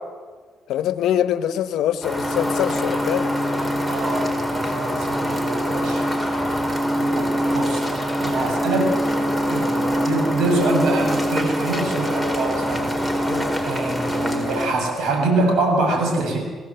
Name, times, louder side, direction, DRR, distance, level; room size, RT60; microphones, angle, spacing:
voice 1, 0.7-3.3 13.3-13.5, left 11 dB, 85° left, 12 dB, 1.1 m, -24 dB
sound 1, 2.0-14.7, equal, 10° right, 4.7 m, -23 dB
voice 2, 3.9-6.1 7.1-8.9 9.5-12.9 13.6-16.4, right 2 dB, 80° right, 2 dB, 7.5 m, -24 dB
25.0 x 17.0 x 8.0 m, 1.5 s
cardioid pair, 90°, 0 cm